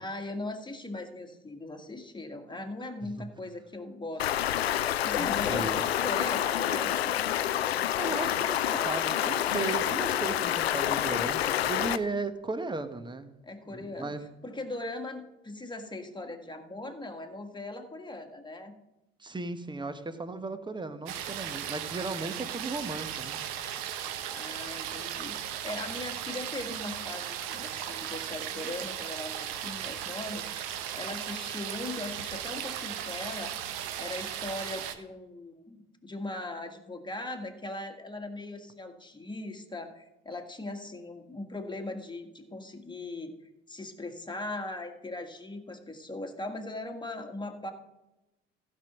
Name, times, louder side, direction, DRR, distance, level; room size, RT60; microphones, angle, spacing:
voice 1, 0.0-7.2 8.7-9.0 13.4-14.1 14.4-18.7 24.3-30.6 30.9-33.6 34.0-43.3 43.7-47.7, left 2 dB, 15° left, 5 dB, 1.7 m, -39 dB
Stream, 4.2-12.0, left 11 dB, 90° left, 0.5 m, -28 dB
voice 2, 5.2-5.8 7.9-13.3 13.7-14.2 19.2-23.9, right 3 dB, 15° right, 10 dB, 1.1 m, -36 dB
sound 1, 21.1-34.9, right 10 dB, 70° right, 1.0 m, -37 dB
15.0 x 5.5 x 6.0 m, 1.0 s
hypercardioid pair, 60°, 31 cm